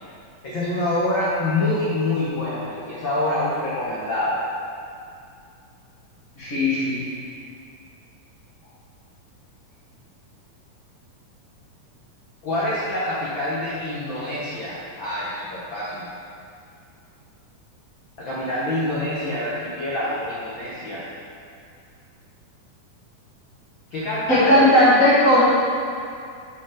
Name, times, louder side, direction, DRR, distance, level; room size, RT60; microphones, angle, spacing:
voice 1, 0.4-4.4 12.4-16.1 18.2-21.1 23.9-24.7, left 1 dB, 85° left, -8 dB, 1.0 m, -26 dB
voice 2, 6.4-7.1 24.3-25.4, left 1 dB, 40° left, -9 dB, 1.2 m, -16 dB
6.8 x 3.8 x 6.4 m, 2.4 s
omnidirectional pair, 3.8 m